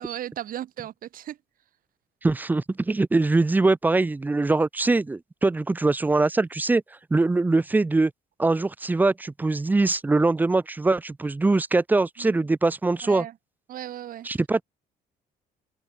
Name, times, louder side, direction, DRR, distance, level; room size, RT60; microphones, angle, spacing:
voice 1, 0.0-1.4 12.2-12.3 13.0-13.3 13.7-14.3, right 12 dB, 55° right, 1.2 m, -36 dB
voice 2, 2.2-6.8 7.1-8.1 8.4-13.3 14.2-14.6, right 3 dB, 10° right, 0.4 m, -22 dB
open air
cardioid pair, 110°, 17 cm